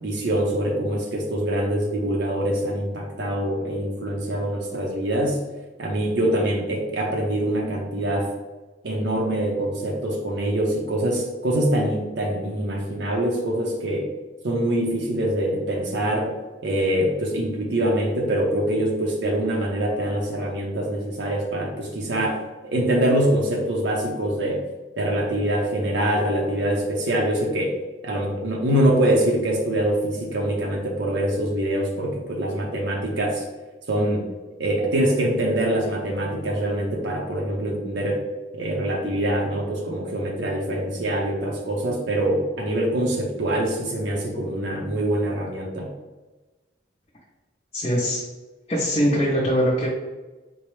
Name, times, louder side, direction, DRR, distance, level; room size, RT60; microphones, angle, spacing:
voice 1, 0.0-5.4 5.8-8.3 8.8-14.1 14.4-16.3 16.6-24.6 25.0-27.7 28.0-33.4 33.9-34.2 34.6-38.2 38.5-45.9, right 1 dB, 85° right, -1 dB, 0.6 m, -24 dB
voice 2, 47.7-48.2 48.7-49.9, equal, 35° left, -5 dB, 0.5 m, -22 dB
4.5 x 2.0 x 3.1 m, 1.2 s
head